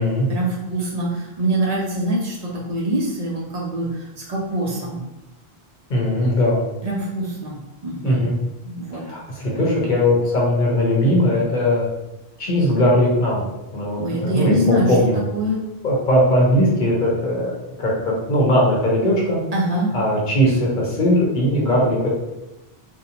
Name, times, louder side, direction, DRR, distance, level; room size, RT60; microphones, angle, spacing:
voice 1, 0.3-5.0 6.8-7.6 7.8-8.3 8.6-9.0 13.9-14.9 15.3-15.6 19.5-19.9, right 1 dB, 50° right, -3 dB, 0.5 m, -24 dB
voice 2, 5.9-6.6 8.0-8.3 9.1-11.9 12.4-13.4 13.7-14.6 14.9-15.2 15.8-17.5 17.8-19.4 19.9-22.1, left 1 dB, 50° left, -3 dB, 0.8 m, -19 dB
2.6 x 2.0 x 2.8 m, 0.94 s
omnidirectional pair, 1.1 m